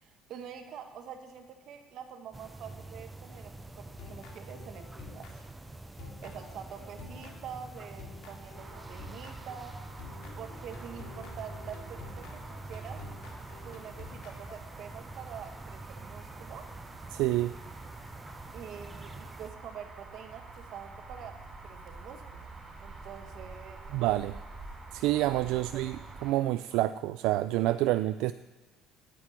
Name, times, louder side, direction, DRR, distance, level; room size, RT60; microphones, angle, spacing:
voice 1, 0.0-5.4 6.2-9.7 10.4-13.0 13.6-16.6 18.5-21.4 21.6-24.1 25.5-25.8, right 8 dB, 60° right, 6 dB, 1.5 m, -46 dB
sound 1, 2.3-19.5, right 2 dB, 10° right, 0.6 m, -46 dB
sound 2, 3.8-5.7 6.0-9.6 10.0-14.6, left 4 dB, 65° left, 2.3 m, -50 dB
sound 3, 8.5-26.3, right 3 dB, 25° right, 4.5 m, -47 dB
voice 2, 17.1-17.5 23.9-24.4 24.9-26.0 26.2-28.3, right 16 dB, 80° right, 12 dB, 0.3 m, -28 dB
9.7 x 8.4 x 8.8 m, 1.2 s
cardioid pair, 135°, 0 cm